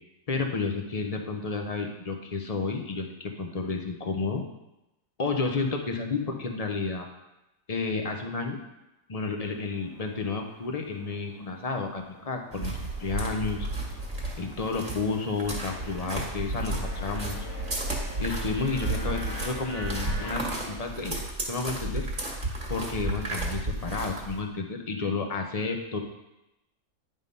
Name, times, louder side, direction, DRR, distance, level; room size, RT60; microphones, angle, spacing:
voice 1, 0.3-4.4 5.2-7.1 7.7-8.6 9.1-12.7 13.0-13.7 14.4-17.5 18.2-21.2 21.5-22.1 22.7-26.0, left 4 dB, 35° left, 3 dB, 0.7 m, -31 dB
sound 1, 9.4-20.3, left 1 dB, 60° left, 1.5 m, -45 dB
sound 2, 12.5-24.4, right 2 dB, 30° right, 1.5 m, -33 dB
9.8 x 3.7 x 5.3 m, 0.94 s
omnidirectional pair, 1.5 m